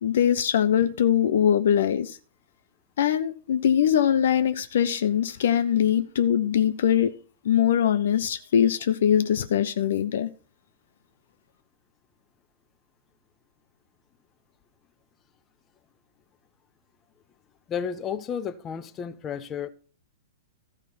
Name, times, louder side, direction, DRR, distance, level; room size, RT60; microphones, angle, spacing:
voice 1, 0.0-2.2 3.0-7.1 7.4-10.3, left 9 dB, 55° left, 0.6 m, -22 dB
voice 2, 17.7-19.7, left 7 dB, 25° left, 0.8 m, -32 dB
14.0 x 4.9 x 5.8 m
figure-of-eight pair, 105°, 0 cm